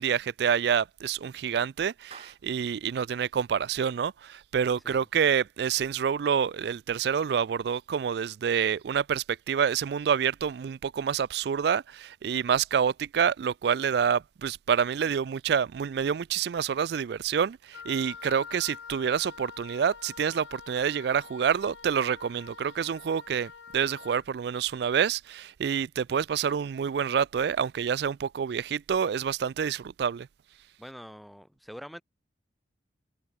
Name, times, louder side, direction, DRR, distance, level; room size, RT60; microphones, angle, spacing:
voice 1, 0.0-30.3, right 7 dB, 60° right, 0.3 m, -27 dB
Clapping, 2.1-2.8, right 5 dB, 35° right, 4.5 m, -49 dB
Wind instrument woodwind instrument, 17.7-24.3, left 6 dB, 85° left, 1.0 m, -46 dB
voice 2, 30.8-32.0, equal, ahead, 1.6 m, -44 dB
head